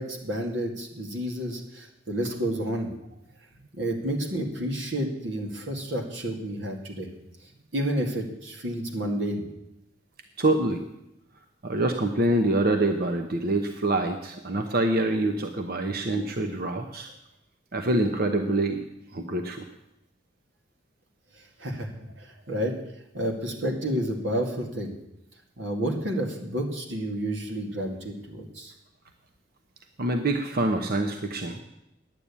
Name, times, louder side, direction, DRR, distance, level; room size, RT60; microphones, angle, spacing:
voice 1, 0.0-2.9 3.7-7.1 7.7-9.4 21.4-21.9 22.2-22.7 23.1-24.9 25.6-28.7, right 1 dB, 75° right, 2 dB, 2.2 m, -30 dB
voice 2, 10.4-10.8 11.6-17.1 17.7-18.8 19.1-19.6 30.0-31.6, right 2 dB, 55° right, 6 dB, 1.0 m, -25 dB
10.5 x 9.0 x 8.4 m, 0.85 s
head